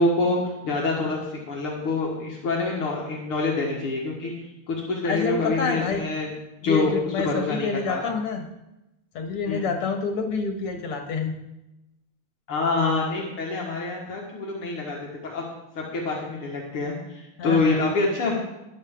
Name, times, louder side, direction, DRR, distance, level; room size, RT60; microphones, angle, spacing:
voice 1, 0.0-6.3 6.6-8.0 9.5-9.7 12.5-15.5 15.8-18.3, left 3 dB, 75° left, -2 dB, 2.6 m, -26 dB
voice 2, 5.0-6.1 6.6-8.5 9.1-11.4 17.4-17.8, left 4 dB, 90° left, 4 dB, 2.4 m, -27 dB
13.0 x 11.0 x 3.8 m, 0.93 s
omnidirectional pair, 2.4 m